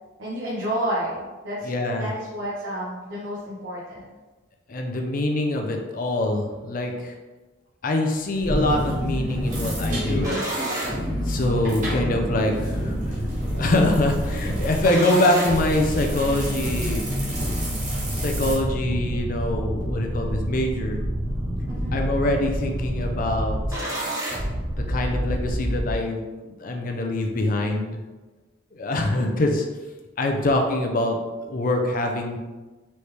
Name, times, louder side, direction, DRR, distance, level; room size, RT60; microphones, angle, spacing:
voice 1, 0.2-4.1 21.7-22.0, right 1 dB, 80° right, -8 dB, 1.0 m, -30 dB
voice 2, 1.6-2.1 4.7-7.2 7.8-10.4 10.7-10.8 11.1-12.9 13.5-17.2 18.1-21.0 21.9-23.8 24.9-28.0 28.7-29.6 30.2-31.2 31.4-32.4, left 1 dB, 45° left, 2 dB, 0.5 m, -24 dB
sound 1, 8.1-18.6, right 1 dB, 40° right, 1.3 m, -35 dB
sound 2, 8.5-25.9, equal, 15° right, 0.8 m, -28 dB
4.1 x 3.2 x 3.3 m, 1.2 s
head